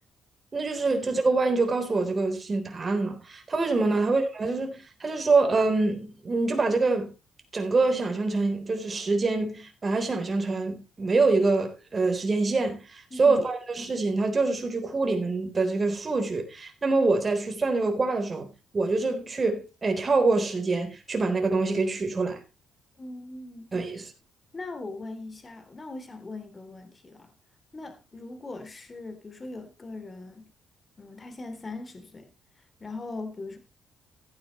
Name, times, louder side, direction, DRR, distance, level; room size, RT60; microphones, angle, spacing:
voice 1, 0.5-7.1 7.5-18.5 18.7-22.4 23.7-24.1, right 3 dB, 30° right, 3.8 m, -25 dB
voice 2, 23.0-23.7 24.5-27.3 27.7-30.5 31.0-32.3 32.8-33.6, left 2 dB, 30° left, 3.0 m, -40 dB
15.5 x 9.6 x 3.1 m
cardioid pair, 90°, 0 cm